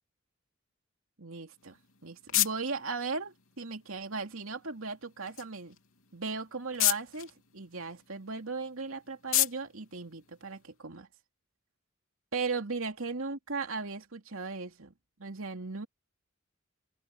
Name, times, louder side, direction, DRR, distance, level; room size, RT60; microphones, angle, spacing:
voice 1, 1.2-5.8 6.1-11.1 12.3-14.9 15.2-15.9, right 4 dB, 85° right, 2.7 m, -37 dB
sound 1, 1.5-10.9, left 14 dB, 75° left, 3.6 m, -36 dB
open air
head